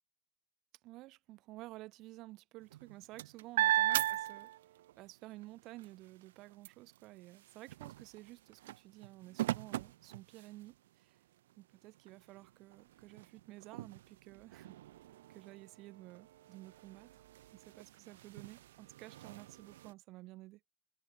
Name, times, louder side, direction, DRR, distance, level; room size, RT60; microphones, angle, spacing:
voice 1, 0.8-4.5 5.0-11.2 11.6-14.8 15.3-17.2 17.5-20.6, right 19 dB, 55° right, 2.3 m, -53 dB
sound 1, 2.6-5.0 5.4-10.9 11.5-11.6 12.0-19.9, right 14 dB, 85° right, 0.5 m, -39 dB
supercardioid pair, 100°, 0 cm